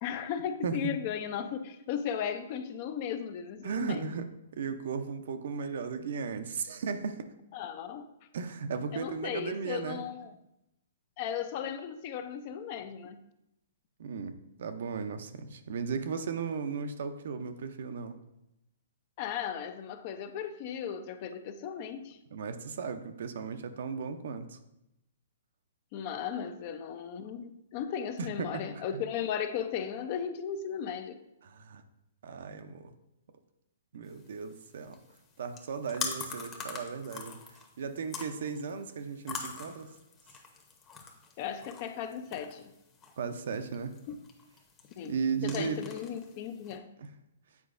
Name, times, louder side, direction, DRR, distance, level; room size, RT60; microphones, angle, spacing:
voice 1, 0.0-4.1 7.5-8.1 8.9-10.3 11.2-13.2 19.2-22.2 25.9-31.2 41.4-42.7 44.1-44.2 45.0-46.9, left 8 dB, 45° left, 9 dB, 0.5 m, -36 dB
voice 2, 3.6-4.3 4.5-7.3 8.3-10.1 14.0-18.2 22.3-24.6 28.2-28.6 28.9-29.0 31.4-31.8 32.2-32.9 33.9-35.0 35.4-37.4 37.8-39.9 43.2-43.9 45.0-45.8 47.0-47.1, right 5 dB, 65° right, 9 dB, 0.6 m, -36 dB
sound 1, 34.1-46.8, left 5 dB, 25° left, 0.9 m, -44 dB
8.3 x 4.6 x 2.5 m, 0.86 s
hypercardioid pair, 130°, 0 cm